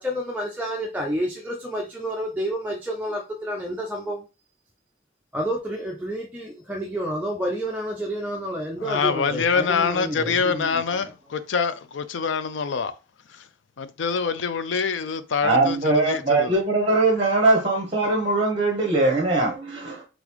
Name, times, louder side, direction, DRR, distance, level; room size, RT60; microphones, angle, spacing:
voice 1, 0.0-4.2 5.3-10.8, equal, 10° right, 0.6 m, -29 dB
voice 2, 8.8-12.9 13.3-13.4 13.8-16.6, left 5 dB, 70° left, 0.4 m, -25 dB
voice 3, 15.4-20.0, right 2 dB, 30° right, 1.0 m, -21 dB
3.9 x 3.5 x 3.0 m
head